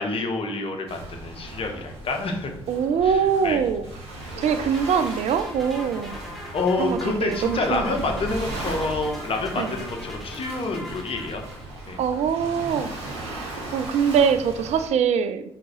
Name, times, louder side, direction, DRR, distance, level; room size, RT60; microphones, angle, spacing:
voice 1, 0.0-2.6 3.0-3.6 4.2-4.4 6.5-11.4 11.9-12.0, left 3 dB, 45° left, 3 dB, 0.9 m, -28 dB
Waves surf, 0.9-14.9, right 1 dB, 85° right, 1.0 m, -37 dB
voice 2, 2.7-3.9 4.4-6.2 6.8-8.0 9.6-9.8 12.0-12.9 13.2-15.5, right 7 dB, 55° right, 10 dB, 0.4 m, -23 dB
sound 1, 4.2-12.0, equal, ahead, 1.8 m, -40 dB
4.8 x 3.5 x 3.0 m, 0.73 s
hypercardioid pair, 40°, 13 cm